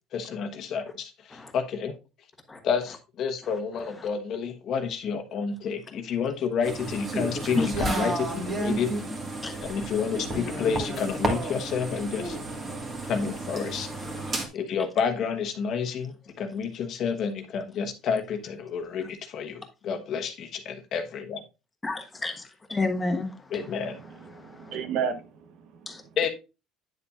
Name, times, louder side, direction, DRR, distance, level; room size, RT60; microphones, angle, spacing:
voice 1, 0.1-1.9 2.6-8.9 9.6-12.4 13.0-13.9 14.5-21.4 23.5-24.0 26.2-26.3, left 6 dB, 45° left, 1.2 m, -30 dB
sound 1, 6.6-14.5, right 2 dB, 25° right, 1.7 m, -32 dB
voice 2, 21.8-22.4 22.7-23.3 25.9-26.0, left 3 dB, 10° left, 1.3 m, -28 dB
voice 3, 23.6-26.1, right 7 dB, 55° right, 0.9 m, -34 dB
9.6 x 7.0 x 2.4 m
cardioid pair, 160°, 0 cm